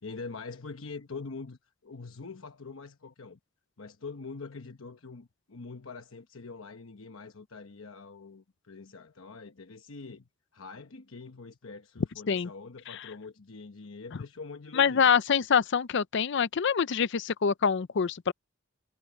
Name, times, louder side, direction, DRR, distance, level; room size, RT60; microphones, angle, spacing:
voice 1, 0.0-3.4 3.8-15.1, left 4 dB, 85° left, 1.0 m, -44 dB
voice 2, 14.7-18.3, left 6 dB, 65° left, 0.5 m, -25 dB
head